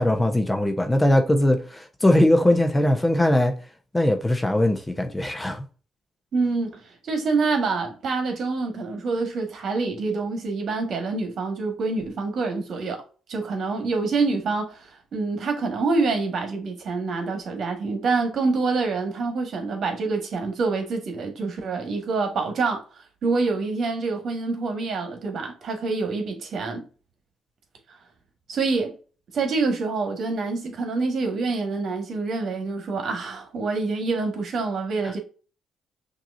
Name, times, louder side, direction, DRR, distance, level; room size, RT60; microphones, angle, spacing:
voice 1, 0.0-3.5 3.9-5.6, left 1 dB, 15° left, 0.8 m, -20 dB
voice 2, 6.3-13.0 13.3-22.8 23.2-26.8 28.5-29.0 29.3-35.2, right 3 dB, 60° right, 1.4 m, -26 dB
5.9 x 2.8 x 2.6 m
cardioid pair, 90°, 0 cm